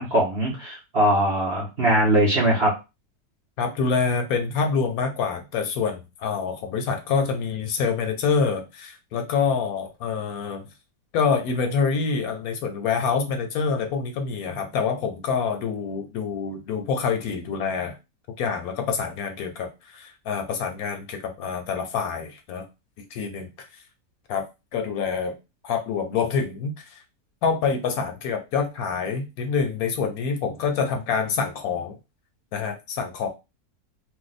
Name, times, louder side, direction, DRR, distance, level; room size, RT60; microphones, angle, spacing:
voice 1, 0.0-2.7, right 1 dB, 55° right, -3 dB, 0.7 m, -21 dB
voice 2, 3.6-10.7 11.1-18.0 18.4-22.6 23.0-23.8 24.3-24.5 24.7-25.4 25.6-27.0 27.4-32.0 32.5-33.3, left 5 dB, 70° left, 5 dB, 1.0 m, -26 dB
2.7 x 2.1 x 3.9 m, 0.26 s
omnidirectional pair, 1.8 m